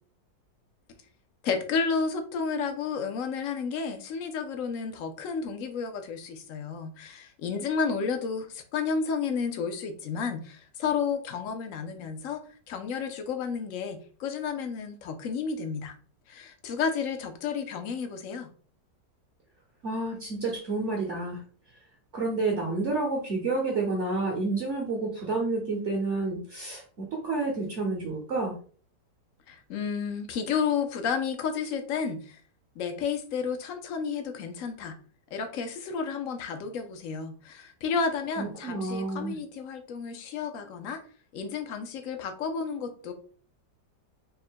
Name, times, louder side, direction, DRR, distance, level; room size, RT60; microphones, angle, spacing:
voice 1, 1.4-12.4 12.7-15.9 16.3-18.5 29.5-32.4 32.8-35.0 35.3-41.0 41.3-43.1, left 5 dB, 65° left, 7 dB, 0.8 m, -31 dB
voice 2, 19.8-21.4 22.1-28.6 38.4-39.4, right 3 dB, 55° right, 0 dB, 0.9 m, -29 dB
3.7 x 2.1 x 4.3 m, 0.43 s
omnidirectional pair, 1.9 m